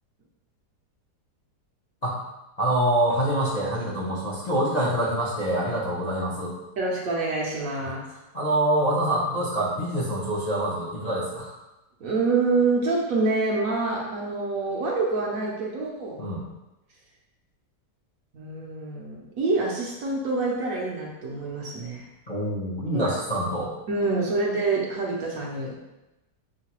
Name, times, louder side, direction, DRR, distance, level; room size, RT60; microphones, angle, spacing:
voice 1, 2.6-6.6 7.8-7.9 8.3-11.6 16.2-16.4 22.3-23.7, right 1 dB, 40° left, -8 dB, 0.5 m, -25 dB
voice 2, 6.8-8.0 12.0-16.2 18.3-22.1 22.9-23.1 23.5-23.6 23.9-25.8, right 3 dB, 65° right, -3 dB, 1.0 m, -26 dB
6.2 x 2.2 x 2.9 m, 0.98 s
omnidirectional pair, 1.8 m